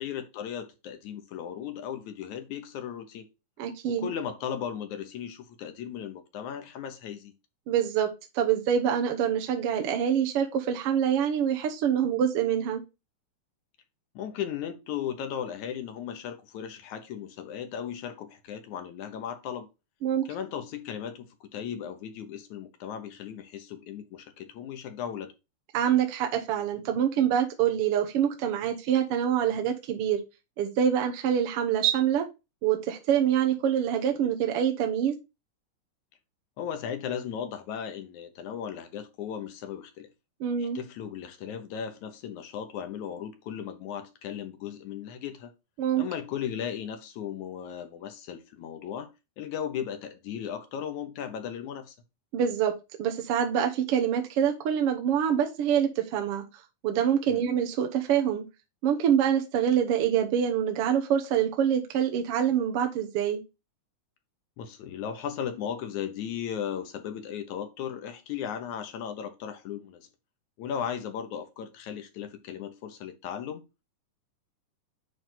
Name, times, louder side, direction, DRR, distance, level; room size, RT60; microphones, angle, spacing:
voice 1, 0.0-3.3 3.9-7.3 14.2-19.7 20.3-25.3 36.6-40.1 40.6-45.5 46.0-49.1 49.4-52.0 57.3-57.5 64.6-70.1 70.6-73.6, left 8 dB, 70° left, 2.2 m, -36 dB
voice 2, 3.6-4.1 7.7-12.8 20.0-20.2 25.7-30.2 30.6-32.3 32.6-35.2 40.4-40.8 45.8-46.0 52.3-52.7 53.0-56.4 56.8-58.4 58.8-63.4, right 9 dB, 70° right, 1.4 m, -25 dB
9.2 x 3.4 x 3.8 m
omnidirectional pair, 3.8 m